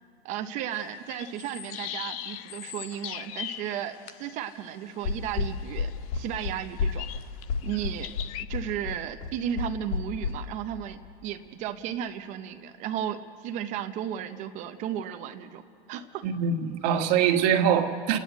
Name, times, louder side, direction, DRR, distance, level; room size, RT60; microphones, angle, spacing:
voice 1, 0.2-7.3 7.6-8.1 8.5-15.6 15.9-16.3, right 10 dB, 25° right, 9 dB, 0.6 m, -34 dB
sound 1, 0.7-8.4, left 11 dB, 35° left, 0.6 m, -40 dB
sound 2, 5.0-10.3, left 5 dB, 50° left, 2.8 m, -30 dB
voice 2, 16.2-18.2, right 8 dB, 40° right, 5 dB, 1.5 m, -23 dB
29.5 x 10.5 x 9.2 m, 2.8 s
hypercardioid pair, 150°, 32 cm